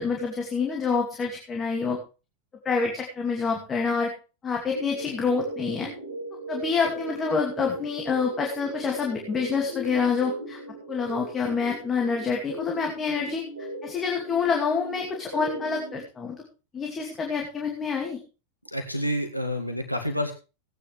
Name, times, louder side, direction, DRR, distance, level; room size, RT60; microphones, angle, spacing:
voice 1, 0.0-2.0 2.6-4.1 4.4-5.9 6.5-10.6 10.9-13.4 13.8-16.4 16.7-18.2, left 5 dB, 20° left, 1 dB, 2.6 m, -27 dB
sound 1, 4.7-16.0, right 1 dB, 65° right, 5.3 m, -38 dB
voice 2, 18.7-20.3, equal, 90° left, 5 dB, 1.9 m, -28 dB
17.5 x 9.8 x 3.5 m, 0.32 s
figure-of-eight pair, 90°, 0 cm